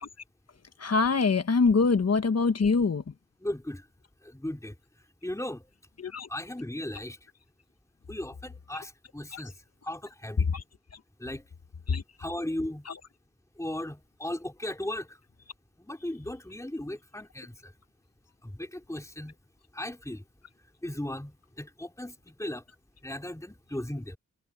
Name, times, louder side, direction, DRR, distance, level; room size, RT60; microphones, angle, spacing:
voice 1, 0.8-3.0 6.0-6.3 9.3-9.4 10.5-10.6 11.9-12.0, left 4 dB, 55° left, 1.2 m, -24 dB
voice 2, 3.4-3.9 4.2-4.7 5.2-5.7 6.3-7.2 8.1-9.5 9.8-10.5 11.2-11.4 12.2-12.9 13.6-15.2 15.8-17.7 18.4-19.3 19.7-20.2 20.8-22.6 23.0-24.2, left 1 dB, 10° left, 3.7 m, -36 dB
wide cardioid pair, 75°, 31 cm